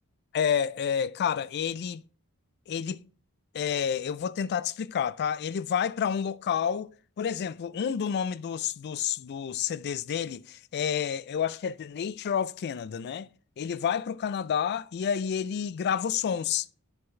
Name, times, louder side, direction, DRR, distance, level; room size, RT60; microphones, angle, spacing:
voice 1, 0.3-2.0 2.7-3.0 3.5-13.3 13.6-16.7, left 8 dB, 50° left, 0.3 m, -29 dB
7.9 x 5.7 x 3.2 m
head